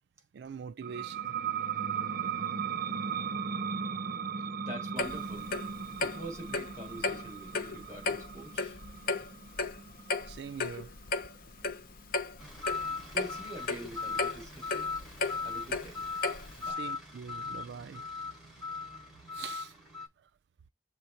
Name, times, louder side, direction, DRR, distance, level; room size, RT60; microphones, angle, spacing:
voice 1, 0.3-1.4 10.3-11.0 16.6-18.1 19.3-19.7 20.2-20.3, right 6 dB, 65° right, 0.3 m, -43 dB
sound 1, 0.8-12.1, right 6 dB, 50° right, 0.7 m, -37 dB
voice 2, 4.6-5.6 6.0-8.8 13.1-14.9 15.4-16.0 16.6-16.8, right 1 dB, 15° right, 3.7 m, -45 dB
Clock, 5.0-16.7, left 3 dB, 50° left, 0.6 m, -35 dB
sound 2, 12.4-20.1, left 4 dB, ahead, 4.0 m, -39 dB
6.9 x 3.5 x 4.3 m
head